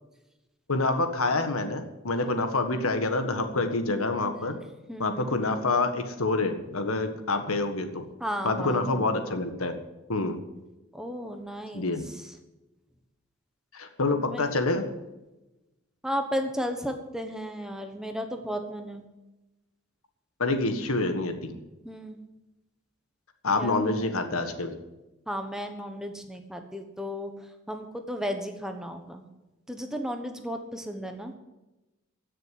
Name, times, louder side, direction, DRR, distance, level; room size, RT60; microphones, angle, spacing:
voice 1, 0.7-4.6 5.0-8.1 8.4-9.8 10.1-10.4 11.7-12.0 13.7-14.9 20.4-21.5 23.4-24.7, left 2 dB, 85° left, 7 dB, 1.6 m, -27 dB
voice 2, 4.9-5.3 8.2-9.1 10.9-12.3 14.2-14.4 16.0-19.0 21.8-22.2 23.6-23.8 25.3-27.3 27.7-29.3 29.7-31.3, equal, 5° right, 5 dB, 1.2 m, -34 dB
16.0 x 6.8 x 9.5 m, 1.0 s
head